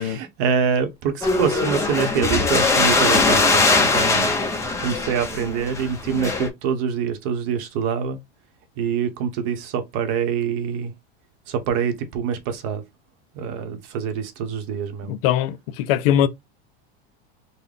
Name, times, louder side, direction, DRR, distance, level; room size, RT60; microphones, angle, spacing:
voice 1, 0.0-4.3 4.8-8.2 8.8-10.9 11.5-12.8 13.3-15.1, right 7 dB, 45° right, 0.8 m, -25 dB
sound 1, 1.2-6.5, left 3 dB, 10° left, 0.6 m, -20 dB
voice 2, 15.1-16.3, left 11 dB, 65° left, 0.5 m, -21 dB
3.7 x 2.1 x 3.3 m
supercardioid pair, 145°, 32 cm